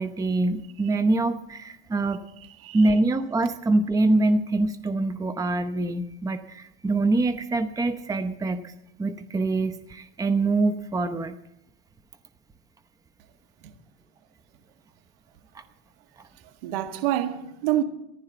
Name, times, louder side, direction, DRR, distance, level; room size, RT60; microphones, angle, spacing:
voice 1, 0.0-2.2 2.7-8.7 9.0-11.4 15.5-15.6, right 2 dB, 10° right, 0.8 m, -24 dB
voice 2, 2.4-2.8 13.6-13.7 16.6-17.8, right 13 dB, 65° right, 1.9 m, -27 dB
14.5 x 11.0 x 7.8 m
hypercardioid pair, 95°, 31 cm